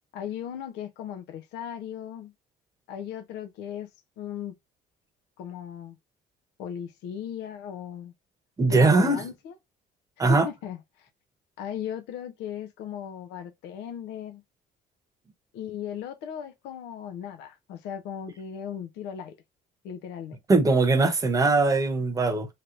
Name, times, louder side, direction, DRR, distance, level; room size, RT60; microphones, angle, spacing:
voice 1, 0.1-2.3 2.9-3.9 4.2-4.5 5.4-6.0 6.6-8.1 8.7-9.5 10.3-11.1 11.6-14.4 15.5-19.4 19.8-20.4, left 9 dB, 90° left, 0.7 m, -37 dB
voice 2, 8.6-9.2 10.2-10.5 20.5-22.5, right 3 dB, 20° right, 0.9 m, -21 dB
3.3 x 2.9 x 2.4 m
cardioid pair, 110°, 17 cm